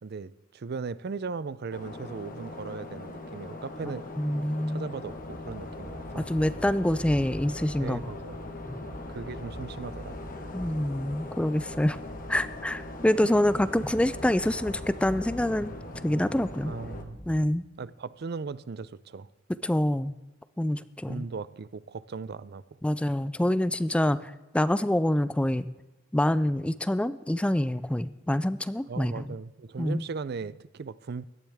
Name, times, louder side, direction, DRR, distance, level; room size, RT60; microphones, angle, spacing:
voice 1, 0.0-4.4 4.7-6.3 7.8-8.4 9.1-10.2 16.7-17.2 17.8-19.3 21.1-22.8 28.9-31.2, right 4 dB, 55° right, 0.5 m, -38 dB
sound 1, 1.7-17.0, left 2 dB, 45° left, 1.4 m, -41 dB
voice 2, 4.2-4.9 6.2-8.0 8.7-8.8 10.5-12.0 12.3-15.7 16.0-16.7 17.3-17.6 19.6-20.1 20.6-21.2 22.8-25.7 26.1-29.2 29.8-30.0, left 1 dB, 5° left, 0.4 m, -26 dB
sound 2, 5.0-17.3, equal, 20° right, 1.8 m, -44 dB
17.5 x 12.5 x 3.5 m
head